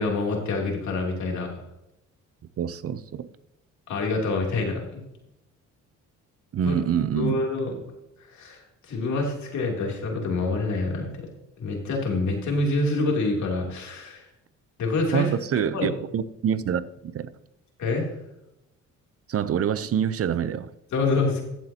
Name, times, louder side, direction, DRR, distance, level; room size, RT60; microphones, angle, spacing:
voice 1, 0.0-1.6 3.9-5.0 6.6-6.7 7.1-7.7 8.3-11.3 11.6-14.3 14.8-15.3 15.7-15.9 17.8-18.1 20.9-21.4, left 3 dB, 70° left, 3.1 m, -26 dB
voice 2, 2.6-3.3 6.5-7.4 15.1-17.3 19.3-20.7, right 8 dB, 50° right, 0.6 m, -26 dB
14.5 x 7.6 x 2.9 m
cardioid pair, 90°, 30 cm